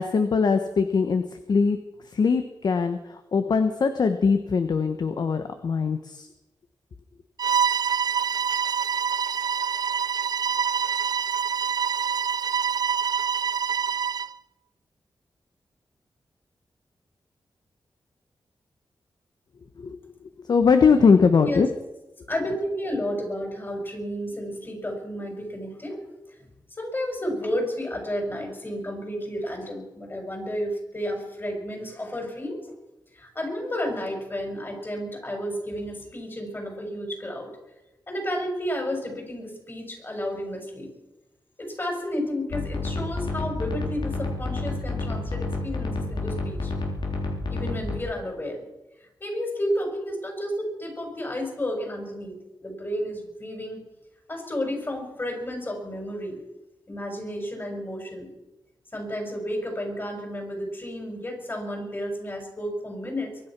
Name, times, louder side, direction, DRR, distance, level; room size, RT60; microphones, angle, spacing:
voice 1, 0.0-1.8 2.1-6.3 19.8-20.0 20.5-21.7, left 5 dB, 60° left, 8 dB, 1.1 m, -21 dB
Bowed string instrument, 7.4-14.3, right 7 dB, 55° right, 0.5 m, -26 dB
voice 2, 22.3-26.0 26.3-26.4 26.8-32.6 33.1-37.5 38.1-40.9 41.6-46.7 47.5-48.7 49.0-53.8 54.3-56.4 56.9-58.3 58.9-63.4, equal, 30° left, 2 dB, 6.0 m, -32 dB
sound 1, 42.5-48.0, left 2 dB, 80° left, 3.6 m, -30 dB
23.5 x 10.0 x 6.1 m, 1.0 s
wide cardioid pair, 90°, 8 cm